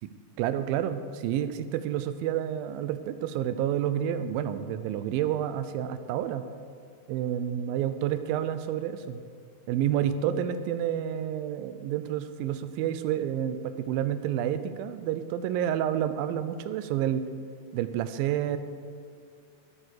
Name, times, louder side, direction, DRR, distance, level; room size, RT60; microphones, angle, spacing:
voice 1, 0.4-6.4 7.1-9.2 9.7-17.2 17.7-18.6, right 10 dB, 90° right, 11 dB, 2.4 m, -29 dB
13.0 x 9.0 x 6.5 m, 2.3 s
omnidirectional pair, 4.0 m